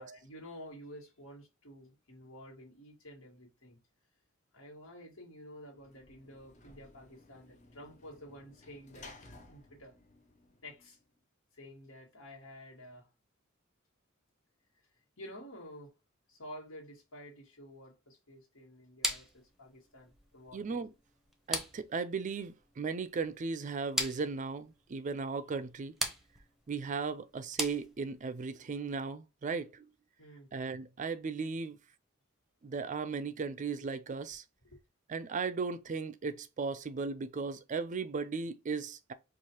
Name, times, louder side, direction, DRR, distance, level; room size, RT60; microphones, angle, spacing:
voice 1, 0.0-3.8 4.5-9.1 9.5-10.0 10.6-11.0 11.5-13.1 15.2-15.9 16.3-20.6 30.2-30.5 33.8-33.9 34.6-34.8, equal, 80° left, 1.6 m, -51 dB
Sliding door / Slam, 5.7-11.1, left 2 dB, 35° left, 0.7 m, -57 dB
sound 1, 19.0-28.4, equal, ahead, 0.7 m, -40 dB
voice 2, 20.5-20.9 21.5-26.0 26.7-29.9 30.5-31.8 32.6-34.4 35.1-39.1, right 4 dB, 40° right, 0.4 m, -36 dB
4.7 x 2.4 x 2.8 m
head